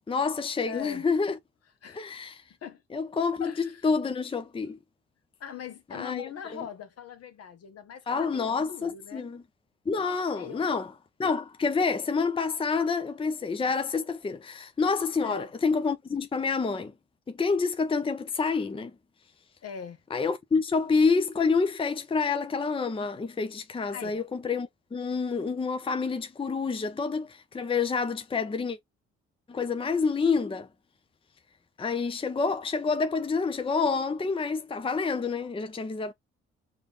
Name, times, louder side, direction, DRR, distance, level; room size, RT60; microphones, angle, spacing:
voice 1, 0.1-1.4 1.9-2.4 2.9-4.8 5.9-6.6 8.1-9.4 9.9-10.9 11.2-16.9 17.3-18.9 20.1-28.8 29.5-30.7 31.8-36.1, left 4 dB, 15° left, 0.6 m, -28 dB
voice 2, 0.7-1.1 1.8-2.2 2.6-2.8 3.4-3.9 5.4-9.3 10.3-10.8 15.2-15.5 19.6-20.0 23.9-24.2, left 8 dB, 55° left, 1.0 m, -41 dB
4.9 x 2.7 x 2.4 m
hypercardioid pair, 50°, 30 cm